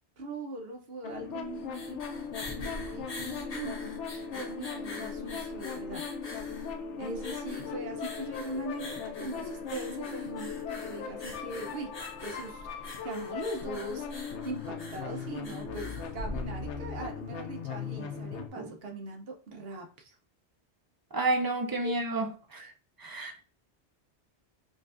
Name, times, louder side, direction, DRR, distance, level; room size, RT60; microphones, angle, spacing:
voice 1, 0.2-2.0 2.6-3.9 4.3-6.0 7.0-11.9 12.2-12.7 13.0-20.2 21.8-22.0, right 2 dB, 60° right, 1.0 m, -40 dB
sound 1, 1.0-18.5, left 6 dB, 85° left, 0.9 m, -39 dB
sound 2, 1.4-16.9, left 2 dB, 40° left, 0.7 m, -44 dB
voice 2, 21.1-22.3 22.5-22.7 23.0-23.4, right 2 dB, 35° right, 0.3 m, -30 dB
5.1 x 2.4 x 2.5 m
omnidirectional pair, 1.2 m